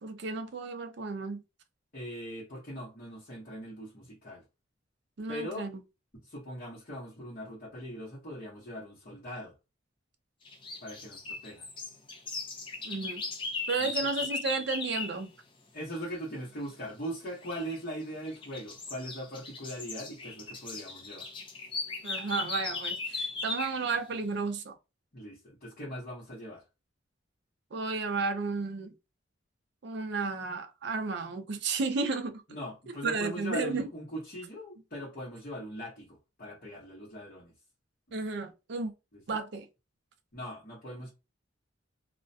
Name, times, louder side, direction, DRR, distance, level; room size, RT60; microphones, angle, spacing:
voice 1, 0.0-1.4 5.2-5.8 12.8-13.2 13.7-15.3 22.0-24.8 27.7-28.9 29.8-32.4 33.0-33.8 38.1-38.9 39.3-39.7, right 4 dB, 60° right, 0.4 m, -33 dB
voice 2, 1.9-4.4 5.3-5.7 6.2-9.5 10.8-11.7 13.8-14.1 15.7-21.3 25.1-26.6 32.5-37.5 39.3-39.4 40.3-41.1, equal, 45° left, 0.9 m, -40 dB
sound 1, 10.5-15.2 17.4-17.8 18.2-23.8, left 3 dB, 25° left, 0.5 m, -37 dB
2.3 x 2.1 x 2.6 m
head